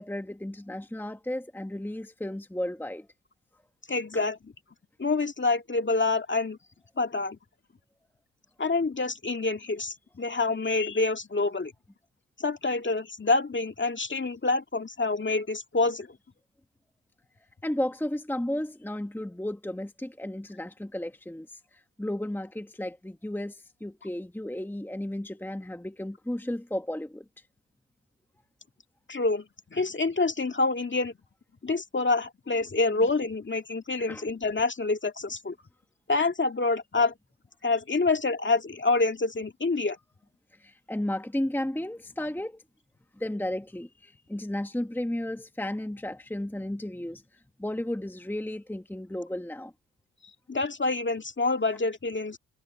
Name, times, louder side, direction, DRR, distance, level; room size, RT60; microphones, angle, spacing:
voice 1, 0.0-3.1 4.1-4.2 17.6-27.2 34.1-34.2 40.6-42.6 43.2-47.2 47.6-49.7, left 1 dB, 5° left, 1.4 m, -33 dB
voice 2, 3.9-4.5 5.0-6.6 7.0-7.4 8.6-11.7 12.4-16.1 29.1-29.4 29.7-31.1 31.6-35.5 36.1-37.1 37.6-40.0 50.5-52.4, left 3 dB, 30° left, 2.0 m, -27 dB
supercardioid pair, 50°, 39 cm